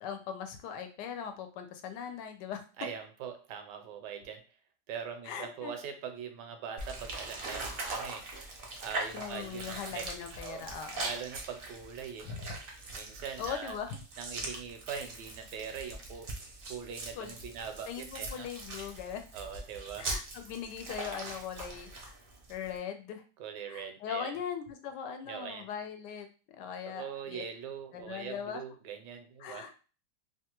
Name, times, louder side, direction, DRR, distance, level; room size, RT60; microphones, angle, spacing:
voice 1, 0.0-2.6 5.2-5.7 9.1-11.1 12.2-12.4 13.4-14.0 14.5-14.6 17.2-19.2 20.0-22.1 22.5-23.2 23.7-27.4 27.9-28.6 29.4-29.7, left 7 dB, 85° left, 6 dB, 1.2 m, -40 dB
voice 2, 2.8-4.4 4.9-8.3 8.8-10.0 10.4-10.6 11.0-12.3 12.9-13.8 14.2-16.3 16.7-18.5 19.3-20.1 23.4-24.3 25.3-25.7 26.9-29.7, right 7 dB, 85° right, 6 dB, 1.2 m, -42 dB
sound 1, 6.8-22.8, right 2 dB, 60° right, 0.5 m, -41 dB
3.0 x 2.3 x 2.9 m, 0.36 s
omnidirectional pair, 1.8 m